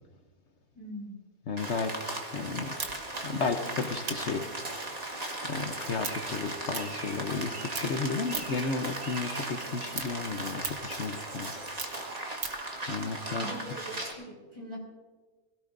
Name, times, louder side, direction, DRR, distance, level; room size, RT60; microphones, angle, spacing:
voice 1, 0.7-1.2 13.4-13.8 14.2-14.8, equal, 60° right, -3 dB, 5.6 m, -42 dB
voice 2, 1.5-2.7 3.2-4.4 5.4-11.5 12.9-13.8, left 4 dB, 55° left, 6 dB, 1.1 m, -33 dB
Rain, 1.6-14.1, right 2 dB, 25° right, 1.6 m, -37 dB
sound 1, 2.8-7.4 7.7-8.7 9.1-12.7, right 5 dB, 45° right, 1.0 m, -40 dB
22.0 x 16.5 x 2.6 m, 1.3 s
omnidirectional pair, 1.6 m